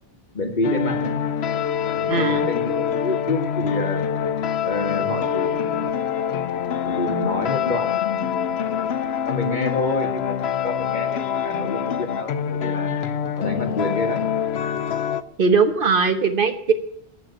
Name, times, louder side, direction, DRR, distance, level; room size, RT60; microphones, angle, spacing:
voice 1, 0.3-1.2 1.9-4.0 4.6-5.9 6.8-8.8 9.3-12.9 13.4-14.3, left 2 dB, 50° left, 5 dB, 1.7 m, -28 dB
sound 1, 0.6-15.2, left 8 dB, 85° left, 1.0 m, -25 dB
voice 2, 2.1-2.5 15.4-16.7, right 5 dB, 60° right, 8 dB, 1.2 m, -19 dB
11.5 x 7.0 x 8.9 m, 0.71 s
omnidirectional pair, 1.0 m